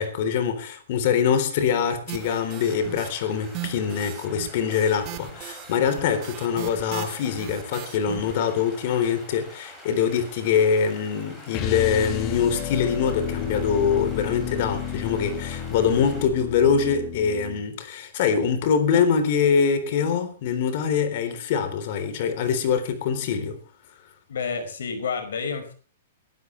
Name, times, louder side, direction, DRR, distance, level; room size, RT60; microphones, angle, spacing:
voice 1, 0.0-23.6, left 7 dB, 50° left, 3.7 m, -24 dB
sound 1, 2.1-16.3, left 1 dB, 10° left, 6.2 m, -46 dB
sound 2, 2.1-3.1 3.4-8.4, right 15 dB, 35° right, 1.7 m, -38 dB
sound 3, 11.5-17.6, left 7 dB, 30° left, 2.0 m, -31 dB
voice 2, 24.3-25.7, left 5 dB, 80° left, 5.3 m, -29 dB
23.5 x 12.0 x 3.3 m
hypercardioid pair, 150°, 0 cm